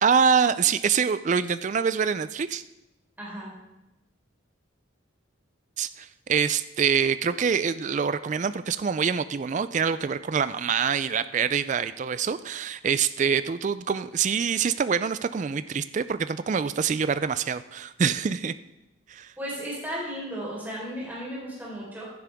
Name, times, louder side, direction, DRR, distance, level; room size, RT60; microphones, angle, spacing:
voice 1, 0.0-2.6 5.8-18.5 19.1-19.3, right 6 dB, 35° right, 13 dB, 0.3 m, -25 dB
voice 2, 3.2-3.5 19.4-22.0, equal, 10° right, -6 dB, 4.1 m, -35 dB
16.0 x 11.5 x 3.5 m, 0.95 s
head